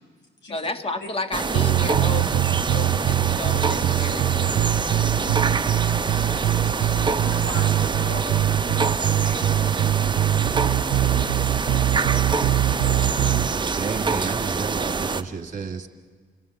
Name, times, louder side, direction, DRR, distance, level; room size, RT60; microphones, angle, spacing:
voice 1, 0.5-4.6, left 3 dB, 30° left, 9 dB, 1.8 m, -32 dB
sound 1, 1.3-15.2, right 4 dB, 25° right, 0.9 m, -26 dB
sound 2, 1.5-13.5, right 13 dB, 80° right, 0.6 m, -23 dB
voice 2, 6.6-8.8 9.2-10.0 11.9-13.4, left 2 dB, 65° left, 1 dB, 6.3 m, -42 dB
voice 3, 13.7-15.9, right 5 dB, 40° right, 6 dB, 2.2 m, -31 dB
26.0 x 16.5 x 8.0 m, 1.6 s
cardioid pair, 90°, 20 cm